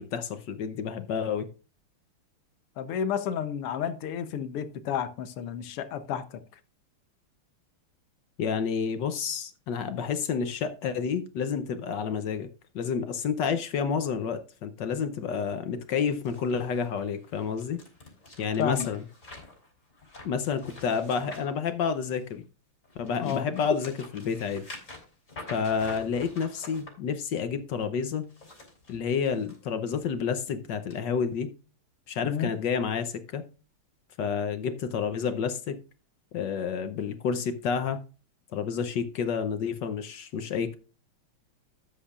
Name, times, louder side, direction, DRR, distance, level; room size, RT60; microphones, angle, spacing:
voice 1, 0.0-1.5 8.4-12.5 12.7-17.8 18.4-19.0 20.2-22.4 23.0-24.7 25.5-28.3 28.9-31.5 32.1-33.4 34.2-35.8 36.3-38.0 38.5-40.7, left 6 dB, 65° left, 1.2 m, -29 dB
voice 2, 2.8-6.4 18.6-18.9 23.2-23.5 32.2-32.5, left 8 dB, 90° left, 1.8 m, -31 dB
sound 1, 16.2-22.4 22.8-26.9 28.2-29.6 30.0-30.3 30.9-31.0, left 2 dB, 35° left, 3.9 m, -47 dB
13.0 x 8.4 x 2.4 m
omnidirectional pair, 2.4 m